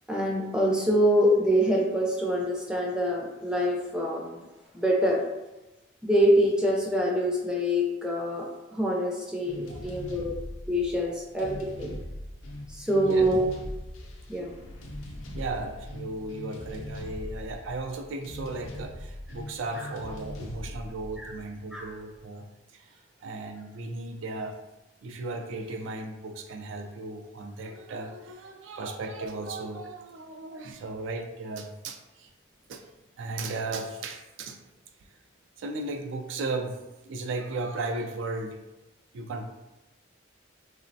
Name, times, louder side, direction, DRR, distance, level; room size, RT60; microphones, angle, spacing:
voice 1, 0.1-4.4 4.7-5.2 6.0-8.5 8.7-10.3 10.7-12.0 12.7-13.5 14.3-14.5 21.2-21.3 21.7-21.8, equal, 5° right, -2 dB, 0.4 m, -25 dB
sound 1, 9.5-22.2, left 1 dB, 90° left, 0.5 m, -41 dB
voice 2, 12.9-13.3 15.3-22.5 22.7-24.6 25.0-32.3 32.7-32.8 33.2-34.6 35.6-36.8 37.0-38.6 39.1-39.5, right 2 dB, 75° right, 5 dB, 0.3 m, -36 dB
3.1 x 2.0 x 2.6 m, 1.0 s
head